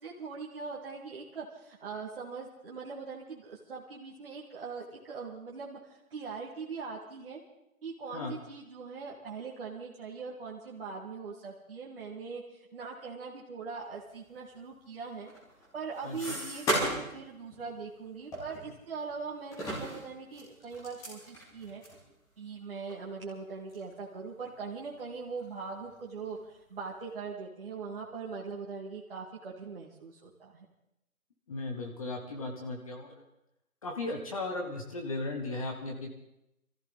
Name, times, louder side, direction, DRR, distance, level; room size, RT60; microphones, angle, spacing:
voice 1, 0.0-7.4 7.8-15.3 15.7-21.8 22.4-30.7, right 5 dB, 40° right, -4 dB, 2.1 m, -41 dB
sound 1, 15.2-17.2 17.5-17.7 18.3-19.1 19.5-22.0 22.5-22.6 22.9-23.0 23.7-23.9 24.3-25.0 25.4-26.1, right 1 dB, 5° left, 2.4 m, -36 dB
voice 2, 16.0-16.4 31.5-33.2 33.8-36.1, left 2 dB, 25° left, 2 dB, 1.3 m, -36 dB
22.0 x 14.5 x 4.0 m, 0.85 s
figure-of-eight pair, 155°, 43 cm